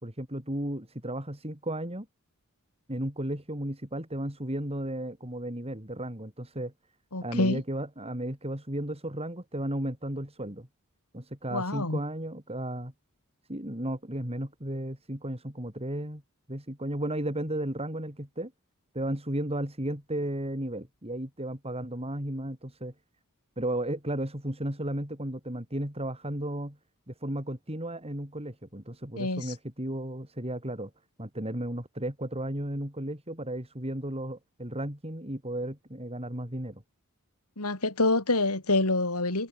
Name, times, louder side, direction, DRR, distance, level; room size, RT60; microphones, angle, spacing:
voice 1, 0.0-2.1 2.9-6.7 7.2-10.7 11.1-12.9 13.5-16.2 16.5-18.5 18.9-22.9 23.6-26.8 27.1-30.9 31.2-36.8, right 1 dB, 25° right, 6.1 m, -34 dB
voice 2, 7.1-7.6 11.5-12.0 29.2-29.5 37.6-39.5, left 2 dB, 85° left, 4.4 m, -27 dB
head